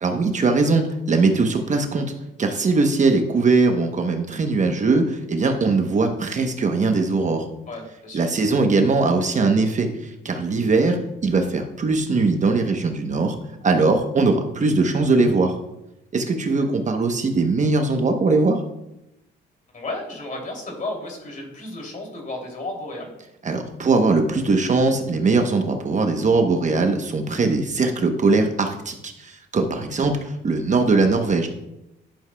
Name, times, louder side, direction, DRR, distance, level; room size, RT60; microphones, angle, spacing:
voice 1, 0.0-2.1 2.4-7.4 8.1-13.4 13.6-15.5 16.1-18.6 23.4-31.5, right 3 dB, 40° right, 5 dB, 0.9 m, -20 dB
voice 2, 7.7-8.3 16.6-16.7 19.7-23.1, left 2 dB, 40° left, 1 dB, 2.8 m, -33 dB
11.5 x 7.1 x 2.3 m, 0.87 s
cardioid pair, 90°, 20 cm